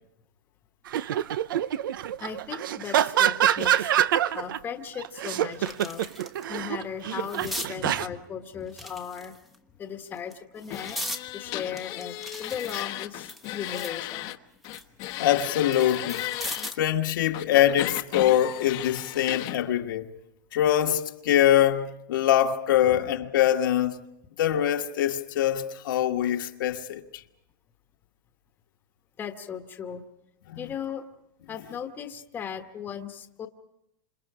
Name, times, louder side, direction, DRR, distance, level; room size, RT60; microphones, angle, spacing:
sound 1, 0.9-4.6 5.0-8.1, right 11 dB, 75° right, 0.8 m, -25 dB
voice 1, 2.2-3.9 4.3-6.1 6.5-9.3 9.8-11.0 11.3-14.3 29.2-30.0 30.6-31.1 31.5-33.5, left 7 dB, 15° left, 1.4 m, -37 dB
sound 2, 4.4-4.5 5.0-6.5 6.8-7.7 8.7-9.6 10.2-11.2 11.8-14.0 14.4-16.9 18.3-18.5, equal, ahead, 1.1 m, -39 dB
sound 3, 10.7-14.4 14.6-16.7 17.3-19.6, left 15 dB, 35° left, 1.1 m, -35 dB
voice 2, 15.2-16.3 16.8-20.1 20.5-24.0 24.4-27.2 30.5-30.6, left 11 dB, 75° left, 1.8 m, -23 dB
28.5 x 27.0 x 5.0 m
supercardioid pair, 155°, 11 cm